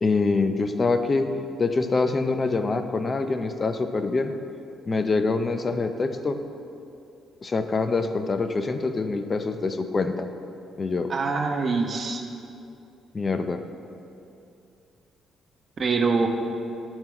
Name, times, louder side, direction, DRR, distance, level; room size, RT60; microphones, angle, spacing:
voice 1, 0.0-1.3 1.6-4.3 4.9-6.4 7.4-10.3 10.8-11.1 13.1-13.6, left 3 dB, 35° left, 7 dB, 0.4 m, -25 dB
voice 2, 11.1-12.2 15.8-16.3, right 4 dB, 45° right, 4 dB, 0.6 m, -24 dB
7.9 x 4.4 x 3.7 m, 2.7 s
cardioid pair, 90°, 0 cm